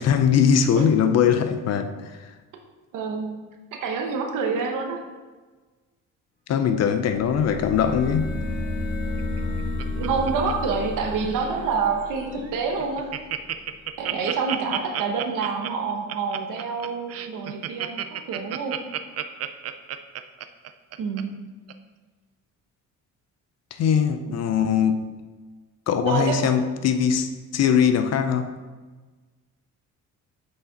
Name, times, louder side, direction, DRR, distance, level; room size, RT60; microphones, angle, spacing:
voice 1, 0.0-2.2 6.5-8.4 23.8-25.1 25.9-27.3 27.5-28.5, left 7 dB, 55° left, 8 dB, 0.5 m, -21 dB
voice 2, 2.9-3.3 3.7-5.0 9.9-13.1 14.0-18.8 21.0-21.3 26.0-26.5, right 5 dB, 75° right, 3 dB, 1.0 m, -27 dB
sound 1, 7.0-13.6, left 2 dB, 30° left, 1.9 m, -32 dB
Laughter, 9.2-10.9 11.2-11.6 12.1-12.2 12.4-12.5 12.8-21.2 21.7-21.8, right 11 dB, 50° right, 0.4 m, -32 dB
6.1 x 4.9 x 4.0 m, 1.3 s
cardioid pair, 130°, 31 cm